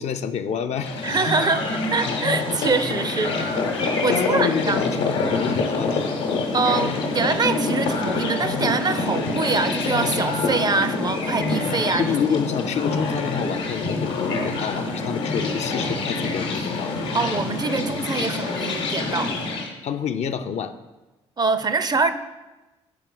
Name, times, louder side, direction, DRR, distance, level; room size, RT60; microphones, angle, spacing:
voice 1, 0.0-1.0 4.1-6.2 12.0-16.9 19.8-20.7, left 7 dB, 50° left, 8 dB, 0.4 m, -28 dB
sound 1, 0.7-19.7, left 3 dB, 85° left, 1.0 m, -26 dB
voice 2, 1.0-3.7 4.0-4.8 6.5-12.1 17.1-19.4 21.4-22.1, right 4 dB, 30° right, 11 dB, 0.5 m, -24 dB
6.7 x 4.1 x 3.9 m, 1.1 s
hypercardioid pair, 50°, 14 cm